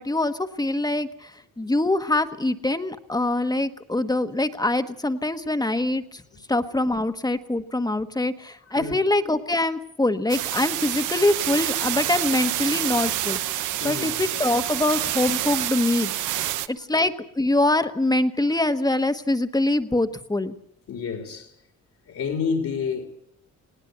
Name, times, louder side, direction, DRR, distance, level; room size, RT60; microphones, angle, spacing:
voice 1, 0.0-6.2 6.5-16.1 16.7-20.5, left 2 dB, 15° left, 1.4 m, -24 dB
sound 1, 10.3-16.7, right 13 dB, 90° right, 0.9 m, -27 dB
voice 2, 13.8-14.1 14.6-14.7 16.2-16.7 20.9-21.5 22.1-23.1, left 5 dB, 65° left, 3.4 m, -30 dB
20.5 x 17.5 x 8.1 m
cardioid pair, 90°, 30 cm